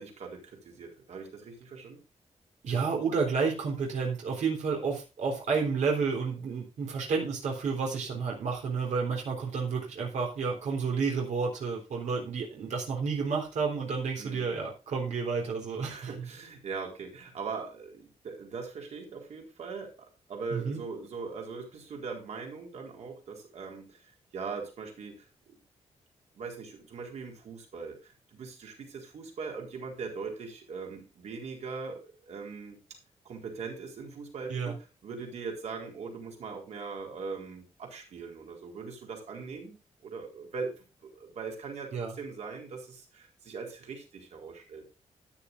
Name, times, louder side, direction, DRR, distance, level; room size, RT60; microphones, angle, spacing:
voice 1, 0.0-2.0 14.2-14.5 15.8-25.6 26.3-32.8 33.2-34.7 35.0-39.8 40.0-44.8, right 4 dB, 70° right, 1 dB, 4.1 m, -41 dB
voice 2, 2.6-16.3 20.5-20.8 34.5-34.7 41.9-42.1, right 5 dB, 90° right, 0 dB, 3.8 m, -30 dB
13.0 x 11.5 x 2.6 m, 0.31 s
wide cardioid pair, 160°, 12 cm